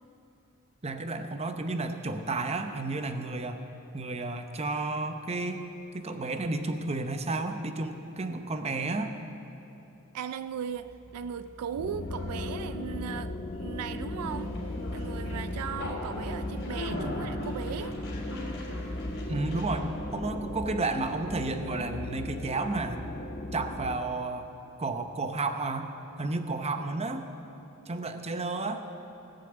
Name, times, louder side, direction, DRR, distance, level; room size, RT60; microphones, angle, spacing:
voice 1, 0.8-3.6 3.9-5.6 5.9-9.1 19.3-23.0 23.5-24.5 24.8-25.9 26.2-27.2 27.9-28.8, right 3 dB, 30° right, 7 dB, 0.8 m, -32 dB
voice 2, 10.1-14.5 14.9-18.0, right 8 dB, 80° right, 13 dB, 0.3 m, -37 dB
Conversation, 10.7-20.2, left 1 dB, 55° left, 3.4 m, -39 dB
sound 1, 11.8-24.0, left 2 dB, 40° left, 0.6 m, -37 dB
18.0 x 6.8 x 8.0 m, 2.9 s
head